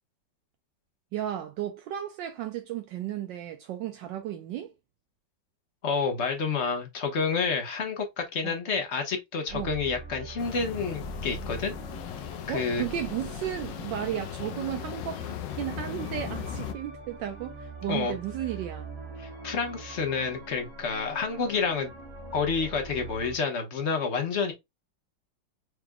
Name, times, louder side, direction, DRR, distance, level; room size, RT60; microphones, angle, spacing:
voice 1, 1.1-4.7 8.4-8.6 9.5-9.7 12.5-18.9, right 11 dB, 75° right, 1.2 m, -34 dB
voice 2, 5.8-11.7 12.5-12.8 17.9-18.1 19.2-21.9 22.3-24.5, left 5 dB, 45° left, 1.1 m, -29 dB
sound 1, 9.5-23.4, right 3 dB, 35° right, 1.4 m, -43 dB
sound 2, 10.4-16.7, left 11 dB, 75° left, 1.2 m, -38 dB
4.8 x 3.4 x 2.2 m
omnidirectional pair, 2.1 m